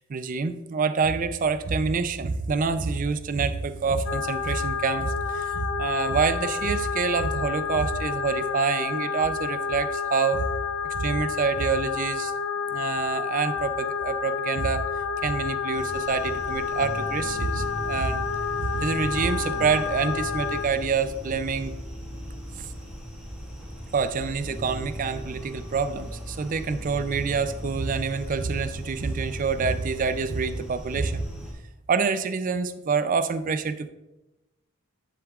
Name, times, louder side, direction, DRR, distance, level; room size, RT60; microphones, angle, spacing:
voice 1, 0.0-10.5 10.9-12.3 12.7-14.9 15.2-18.2 18.6-21.7 22.6-22.7 23.9-31.2 31.9-33.9, right 5 dB, 35° right, 12 dB, 0.4 m, -27 dB
sound 1, 4.1-20.7, left 6 dB, 60° left, 0.6 m, -30 dB
sound 2, 15.7-31.5, equal, 5° right, 2.0 m, -38 dB
10.0 x 7.0 x 2.4 m, 1.0 s
head